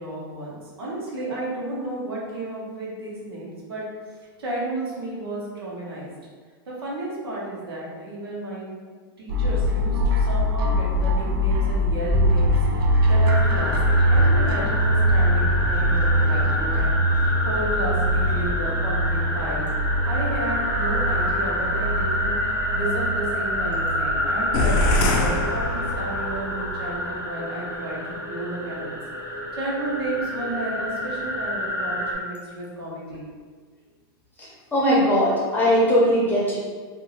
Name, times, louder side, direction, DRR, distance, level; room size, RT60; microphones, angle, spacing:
voice 1, 0.0-3.8 4.4-6.1 6.7-8.7 9.2-12.6 13.1-19.7 20.0-29.0 29.6-33.3, right 2 dB, 85° right, -5 dB, 1.1 m, -32 dB
sound 1, 9.3-26.8, equal, 65° right, 0.5 m, -23 dB
sound 2, 13.3-32.1, equal, 20° right, 0.7 m, -28 dB
sound 3, 24.5-26.4, left 2 dB, 45° left, 0.5 m, -23 dB
voice 2, 34.4-36.6, equal, 15° left, -6 dB, 0.8 m, -20 dB
2.7 x 2.6 x 2.9 m, 1.5 s
hypercardioid pair, 125°, 13 cm